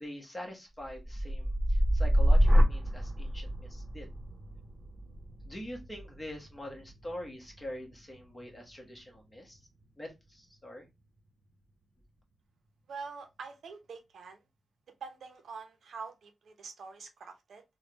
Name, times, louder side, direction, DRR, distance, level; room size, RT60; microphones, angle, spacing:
voice 1, 0.0-4.1 5.4-9.6 10.0-10.9, left 1 dB, 15° left, 1.1 m, -44 dB
sound 1, 0.8-8.9 9.3-9.8, equal, 15° right, 1.8 m, -28 dB
voice 2, 12.9-14.4 15.0-17.6, right 5 dB, 90° right, 0.7 m, -45 dB
3.4 x 2.2 x 2.9 m
wide cardioid pair, 115°, 0 cm